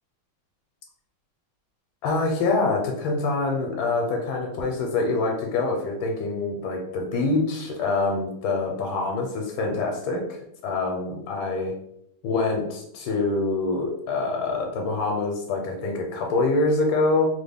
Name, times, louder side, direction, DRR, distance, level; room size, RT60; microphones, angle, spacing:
voice 1, 2.0-10.4 10.6-11.7 12.2-17.3, left 3 dB, 85° left, 1 dB, 1.4 m, -25 dB
3.5 x 2.2 x 3.4 m, 0.74 s
omnidirectional pair, 2.1 m